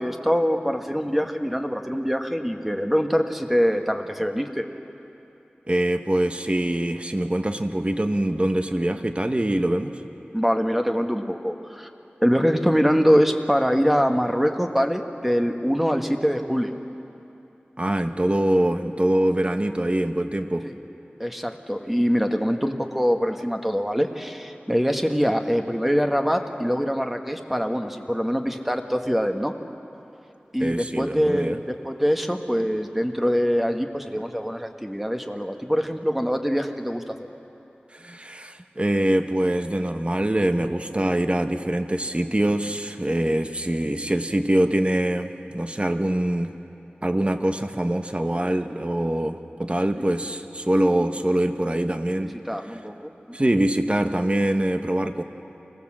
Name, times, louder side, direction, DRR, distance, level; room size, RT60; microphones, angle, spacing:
voice 1, 0.0-4.7 10.3-11.9 12.2-16.8 20.6-20.8 21.2-29.5 30.5-31.6 31.8-37.3 52.5-53.1, equal, 5° right, 4 dB, 1.4 m, -24 dB
voice 2, 5.7-10.0 17.8-20.7 30.6-31.6 37.9-46.6 47.0-52.3 53.3-55.2, right 1 dB, 30° right, 7 dB, 1.2 m, -24 dB
25.0 x 17.5 x 7.5 m, 2.9 s
wide cardioid pair, 45°, 4 cm